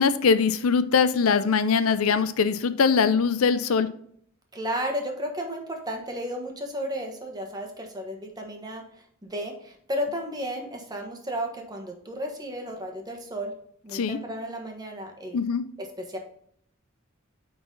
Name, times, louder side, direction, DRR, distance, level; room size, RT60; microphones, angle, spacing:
voice 1, 0.0-3.9 13.9-14.2 15.3-15.6, left 5 dB, 80° left, 12 dB, 0.5 m, -22 dB
voice 2, 4.5-8.8 9.2-13.5 13.8-15.4 16.1-16.2, equal, 20° right, 2 dB, 1.3 m, -33 dB
9.4 x 4.0 x 3.9 m, 0.65 s
head